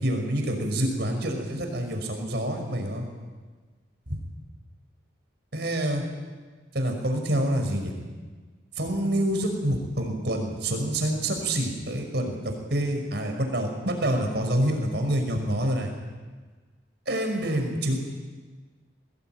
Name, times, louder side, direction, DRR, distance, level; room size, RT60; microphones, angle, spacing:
voice 1, 0.0-3.0 4.1-4.2 5.5-6.0 6.7-7.9 8.8-12.4 12.7-15.9 17.1-18.0, right 1 dB, 60° right, 4 dB, 5.5 m, -27 dB
22.5 x 20.5 x 9.3 m, 1.4 s
head